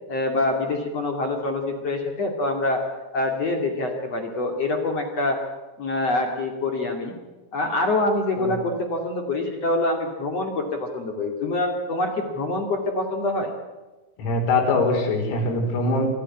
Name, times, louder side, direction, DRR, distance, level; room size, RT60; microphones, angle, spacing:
voice 1, 0.1-2.8 3.1-5.4 5.8-7.1 7.5-13.5, left 2 dB, 40° left, 3 dB, 2.5 m, -25 dB
voice 2, 14.2-16.1, left 2 dB, 80° left, 2 dB, 7.1 m, -22 dB
26.5 x 13.5 x 9.7 m, 1.2 s
omnidirectional pair, 6.0 m